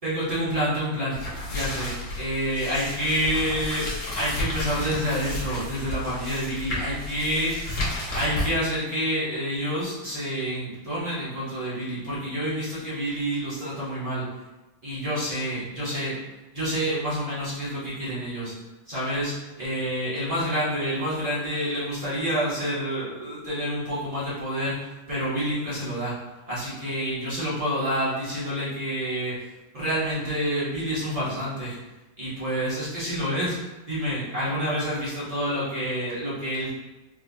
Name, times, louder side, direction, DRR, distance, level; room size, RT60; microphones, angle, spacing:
voice 1, 0.0-1.2 1.5-3.9 4.2-7.6 8.1-14.3 14.8-16.2 16.5-18.5 18.9-26.2 26.5-29.4 29.7-31.8 32.2-33.6 33.9-36.7, equal, 30° right, -10 dB, 0.7 m, -28 dB
sound 1, 1.1-8.5, left 2 dB, 50° left, 1.0 m, -32 dB
4.7 x 2.2 x 2.7 m, 1.1 s
omnidirectional pair, 2.1 m